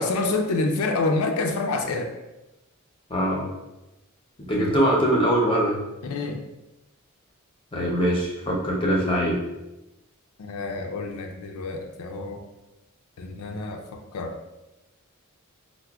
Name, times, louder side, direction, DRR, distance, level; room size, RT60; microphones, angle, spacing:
voice 1, 0.0-2.1 6.0-6.4 10.4-12.4 13.2-13.8 14.1-14.4, left 3 dB, 85° left, 3 dB, 0.4 m, -27 dB
voice 2, 3.1-3.4 4.5-5.8 7.7-9.4, equal, 25° left, -2 dB, 0.5 m, -22 dB
4.7 x 2.1 x 2.2 m, 0.99 s
head